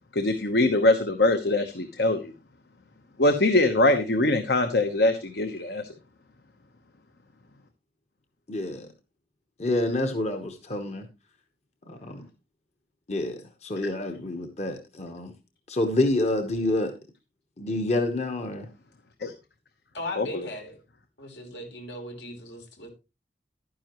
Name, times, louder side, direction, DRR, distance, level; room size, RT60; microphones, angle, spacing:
voice 1, 0.1-2.3 3.2-5.8 19.2-19.3 20.2-20.5, left 2 dB, 65° left, 1.0 m, -23 dB
voice 2, 8.5-8.9 9.6-11.1 11.9-12.2 13.1-15.3 15.7-16.9 17.6-18.7, left 2 dB, 40° left, 1.0 m, -28 dB
voice 3, 19.9-20.8 21.2-22.9, left 1 dB, 80° left, 3.4 m, -38 dB
11.5 x 9.9 x 3.0 m
head